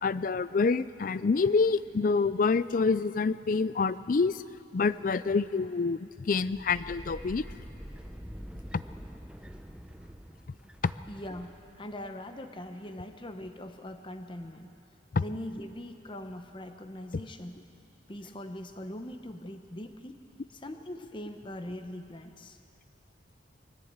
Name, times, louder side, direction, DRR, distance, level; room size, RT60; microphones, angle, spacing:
voice 1, 0.0-4.4 4.7-7.4 8.7-8.8 10.8-10.9 15.1-15.2, left 4 dB, 45° left, 16 dB, 0.4 m, -27 dB
sound 1, 6.3-11.9, equal, 5° right, 0.6 m, -46 dB
voice 2, 11.1-14.8 15.2-17.6 18.1-20.2 20.5-22.6, left 1 dB, 25° left, 7 dB, 0.9 m, -41 dB
20.5 x 14.5 x 8.8 m, 2.8 s
head